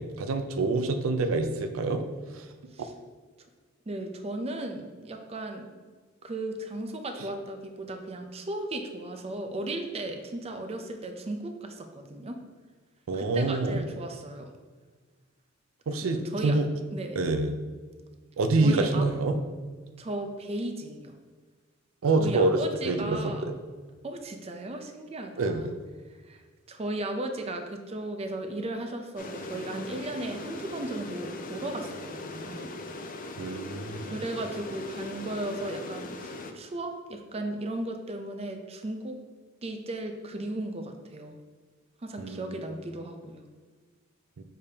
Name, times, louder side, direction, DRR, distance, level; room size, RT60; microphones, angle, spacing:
voice 1, 0.0-2.0 2.3-2.5 13.1-13.8 15.9-16.7 17.2-17.5 18.4-19.3 22.0-22.6 22.9-23.5 25.4-25.7 33.4-34.1 42.2-42.6, right 3 dB, 85° right, 7 dB, 0.5 m, -26 dB
voice 2, 3.9-5.9 6.2-12.4 13.1-14.5 16.0-16.5 16.9-17.2 18.6-19.1 20.0-21.1 22.2-23.5 24.0-25.7 26.2-26.4 26.7-32.7 34.0-39.2 39.6-41.4 42.0-43.4, right 1 dB, 30° right, 5 dB, 0.5 m, -36 dB
sound 1, 29.2-36.5, left 2 dB, 45° left, 0.5 m, -39 dB
6.7 x 5.0 x 2.8 m, 1.5 s
head